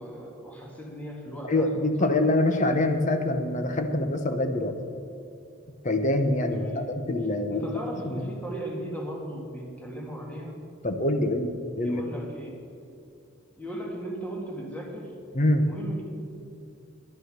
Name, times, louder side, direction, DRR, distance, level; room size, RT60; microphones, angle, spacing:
voice 1, 0.0-2.1 6.5-6.9 7.5-10.6 11.8-12.6 13.6-15.1 15.6-16.0, right 1 dB, 5° left, -2 dB, 2.0 m, -37 dB
voice 2, 1.5-4.8 5.8-7.7 8.1-8.3 10.8-12.0 15.3-15.6, left 1 dB, 35° left, 7 dB, 0.9 m, -25 dB
11.0 x 9.8 x 6.6 m, 2.5 s
head